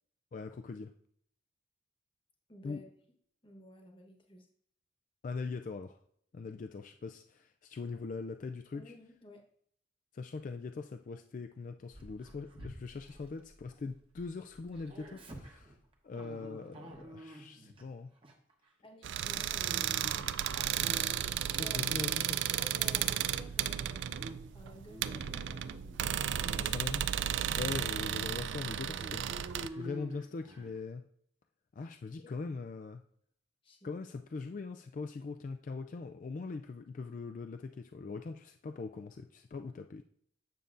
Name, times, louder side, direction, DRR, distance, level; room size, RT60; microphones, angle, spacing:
voice 1, 0.3-0.9 2.6-2.8 5.2-6.0 6.3-8.9 10.1-15.7 16.0-18.1 21.5-22.4 26.6-27.1 27.6-29.3 29.7-31.0 31.8-33.0 33.8-40.0, left 4 dB, 45° left, 7 dB, 0.3 m, -41 dB
voice 2, 2.5-2.9 3.4-4.5 8.7-9.4 18.8-20.6 21.5-21.8 22.3-24.1 24.5-25.8 26.3-26.8 32.2-32.3 33.6-33.9, left 1 dB, 30° left, 2 dB, 1.1 m, -53 dB
Dog, 11.9-14.2 14.5-17.8 18.2-18.5 19.3-22.4 22.8-23.6 24.0-24.4 24.7-26.0 26.4-26.7 27.3-27.4 27.7-27.8 28.5-30.8, right 1 dB, 30° right, 1.0 m, -49 dB
sound 1, 19.0-29.7, right 10 dB, 90° right, 0.3 m, -34 dB
9.0 x 6.7 x 2.5 m, 0.65 s
head